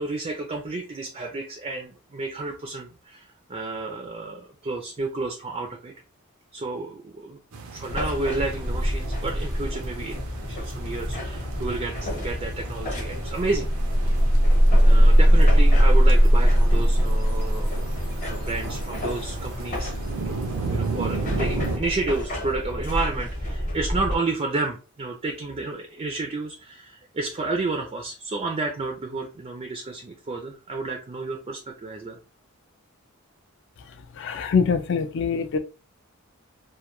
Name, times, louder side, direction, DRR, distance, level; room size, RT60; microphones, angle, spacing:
voice 1, 0.0-5.9 6.5-7.4 7.7-13.7 14.8-17.7 18.2-19.9 20.2-32.2, right 3 dB, 30° right, 0.3 m, -31 dB
sound 1, 7.5-21.8, right 4 dB, 85° right, 0.5 m, -35 dB
sound 2, 7.9-24.2, left 1 dB, 35° left, 0.8 m, -32 dB
sound 3, 13.5-19.8, equal, 90° left, 0.7 m, -18 dB
voice 2, 34.2-35.6, left 5 dB, 55° left, 0.3 m, -24 dB
2.2 x 2.2 x 2.9 m
head